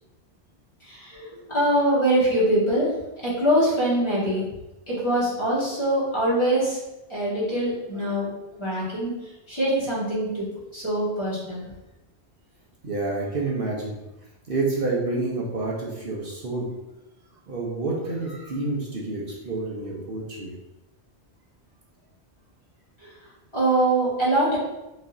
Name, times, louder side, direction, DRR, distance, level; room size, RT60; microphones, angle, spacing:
voice 1, 0.8-2.9 3.2-4.5 4.9-6.8 7.1-8.3 8.6-9.1 9.5-10.4 10.7-11.7 23.0-23.1 23.5-24.6, right 1 dB, 25° left, -9 dB, 1.7 m, -23 dB
voice 2, 12.8-13.9 14.5-16.7 17.5-20.5, right 3 dB, 55° right, -3 dB, 1.0 m, -28 dB
5.1 x 3.3 x 2.6 m, 0.97 s
omnidirectional pair, 1.1 m